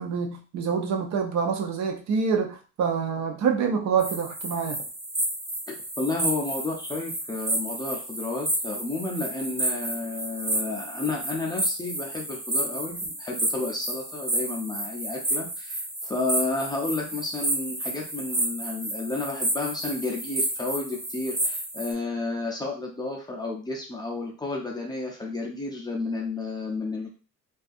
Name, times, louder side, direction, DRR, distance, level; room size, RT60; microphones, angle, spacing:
voice 1, 0.0-4.8, right 6 dB, 60° right, 3 dB, 0.6 m, -26 dB
sound 1, 4.0-21.9, right 1 dB, 20° right, 0.7 m, -31 dB
voice 2, 5.7-27.1, left 3 dB, 15° left, -1 dB, 0.4 m, -31 dB
2.6 x 2.3 x 2.5 m, 0.36 s
cardioid pair, 170°, 31 cm